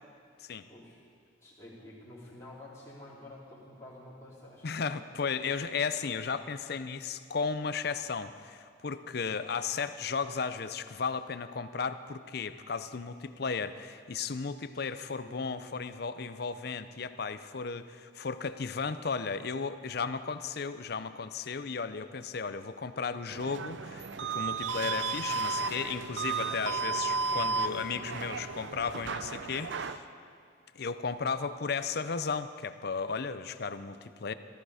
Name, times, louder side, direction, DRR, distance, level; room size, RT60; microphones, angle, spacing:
voice 1, 0.7-1.0 1.4-4.7 15.2-15.8 26.1-26.7, left 1 dB, 15° left, -8 dB, 3.9 m, -50 dB
voice 2, 4.6-30.0 30.7-34.3, left 5 dB, 55° left, 12 dB, 0.6 m, -35 dB
sound 1, 23.3-30.0, right 4 dB, 70° right, 0.6 m, -33 dB
17.5 x 14.0 x 5.0 m, 2.2 s
head